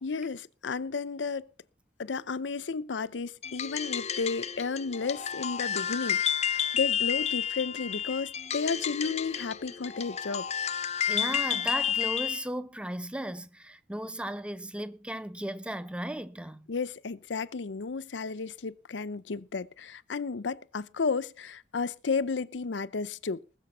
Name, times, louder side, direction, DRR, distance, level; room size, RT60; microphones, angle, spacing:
voice 1, 0.0-1.5 2.0-10.5 16.7-23.4, left 4 dB, 90° left, 0.6 m, -33 dB
sound 1, 3.4-12.5, left 8 dB, 35° left, 0.6 m, -31 dB
voice 2, 11.1-16.7, right 1 dB, 5° right, 0.6 m, -36 dB
20.0 x 6.8 x 5.6 m
head